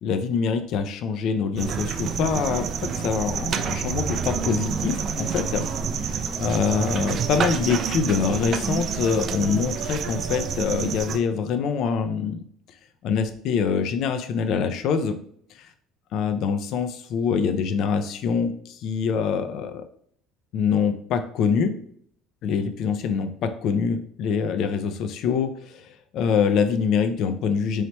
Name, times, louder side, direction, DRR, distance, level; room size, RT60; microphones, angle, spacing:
voice 1, 0.0-5.6 6.4-12.4 13.0-15.2 16.1-19.8 20.5-21.7 22.4-25.8 26.1-27.8, left 6 dB, 50° left, 9 dB, 0.4 m, -25 dB
sound 1, 1.6-11.2, right 6 dB, 35° right, 0.3 m, -28 dB
4.2 x 3.2 x 3.0 m, 0.62 s
cardioid pair, 160°, 0 cm